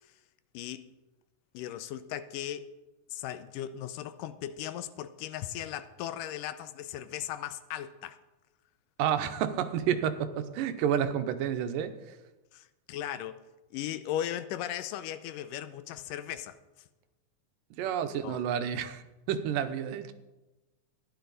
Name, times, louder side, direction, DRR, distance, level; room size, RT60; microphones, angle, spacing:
voice 1, 0.5-0.9 1.5-2.7 3.1-8.2 12.5-13.4 13.7-16.6 17.8-17.9 18.2-18.4, left 11 dB, 85° left, 12 dB, 2.3 m, -37 dB
voice 2, 9.0-11.9 17.8-19.0 19.3-20.1, right 9 dB, 85° right, 9 dB, 2.4 m, -30 dB
14.5 x 10.5 x 4.0 m, 1.1 s
omnidirectional pair, 3.8 m